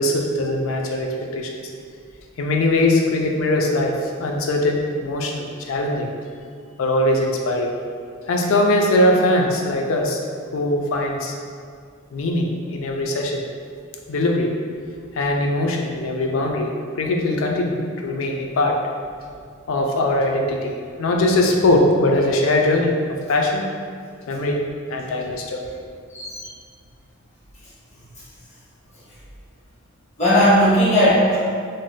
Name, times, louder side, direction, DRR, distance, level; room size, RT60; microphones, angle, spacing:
voice 1, 0.0-1.6 2.4-6.1 6.8-7.7 8.3-10.2 10.5-11.3 12.1-13.4 14.1-14.5 15.1-18.8 19.7-20.7 21.0-22.9 23.3-23.6 24.3-24.6 24.9-25.6, left 1 dB, 80° left, 1 dB, 0.4 m, -21 dB
voice 2, 30.2-31.4, equal, 35° left, -10 dB, 0.9 m, -16 dB
2.6 x 2.1 x 3.7 m, 2.1 s
head